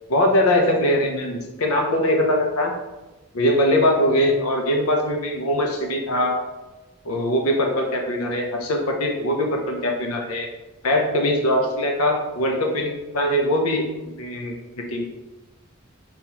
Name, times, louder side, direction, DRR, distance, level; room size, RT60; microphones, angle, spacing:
voice 1, 0.1-2.7 3.3-6.4 7.0-10.5 10.8-15.0, left 1 dB, 90° left, 1 dB, 0.6 m, -22 dB
5.5 x 3.0 x 2.9 m, 1.1 s
head